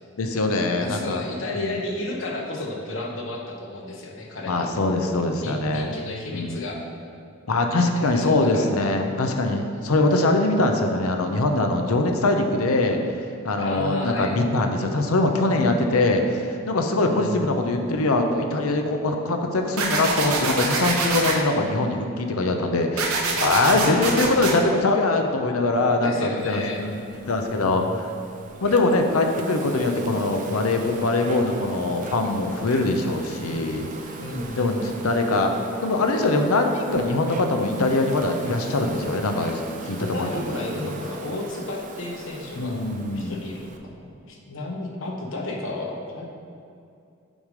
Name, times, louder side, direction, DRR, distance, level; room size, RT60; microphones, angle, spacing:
voice 1, 0.2-1.2 1.6-1.7 4.5-5.9 6.3-6.6 7.5-13.0 13.4-27.0 27.3-28.1 28.6-33.9 34.6-35.5 35.8-40.4 42.6-43.4, left 2 dB, 85° left, 4 dB, 0.7 m, -22 dB
voice 2, 0.8-4.7 5.4-6.8 8.1-8.7 9.7-9.9 13.6-14.4 17.0-17.7 23.6-24.3 26.0-26.8 27.6-28.1 34.2-35.2 40.0-46.3, left 2 dB, 65° left, -1 dB, 1.0 m, -33 dB
sound 1, 19.8-21.4 23.0-24.5, right 3 dB, 90° right, 0.9 m, -24 dB
Insect, 26.4-43.8, right 3 dB, 35° right, 0.5 m, -39 dB
8.8 x 3.2 x 5.1 m, 2.5 s
head